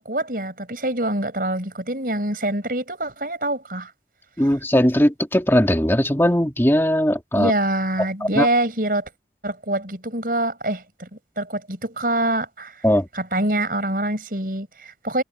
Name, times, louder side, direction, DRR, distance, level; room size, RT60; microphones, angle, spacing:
voice 1, 0.0-3.9 7.3-9.1 9.4-11.1 11.4-12.8 13.1-15.2, right 1 dB, 50° right, 6.8 m, -25 dB
voice 2, 4.4-7.5 8.3-8.5 12.8-13.1, equal, 15° left, 2.3 m, -19 dB
head